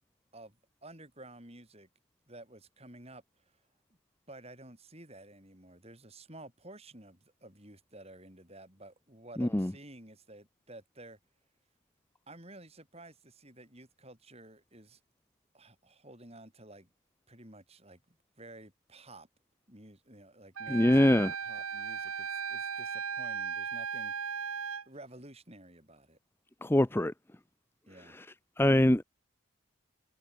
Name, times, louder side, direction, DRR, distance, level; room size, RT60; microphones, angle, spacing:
voice 1, 0.3-1.9 2.3-3.2 4.3-11.2 12.3-15.0 15.5-16.9 17.3-19.3 19.7-24.6 24.9-26.2 27.9-28.2, right 1 dB, 30° right, 7.6 m, -52 dB
voice 2, 9.4-9.7 20.7-21.3 26.6-27.1 28.1-28.3 28.6-29.0, left 1 dB, 10° left, 0.5 m, -24 dB
Wind instrument woodwind instrument, 20.6-24.8, right 6 dB, 90° right, 1.8 m, -36 dB
head